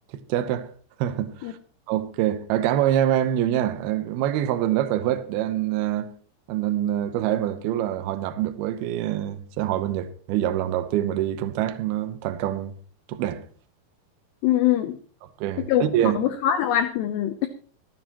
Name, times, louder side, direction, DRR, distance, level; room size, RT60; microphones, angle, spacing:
voice 1, 0.3-0.7 1.0-1.6 1.9-6.1 6.5-12.7 13.1-13.4 15.4-16.2, right 11 dB, 90° right, 2.2 m, -25 dB
voice 2, 14.4-15.0 15.6-15.9 16.2-17.5, left 11 dB, 80° left, 2.4 m, -23 dB
25.5 x 9.4 x 3.0 m
omnidirectional pair, 5.8 m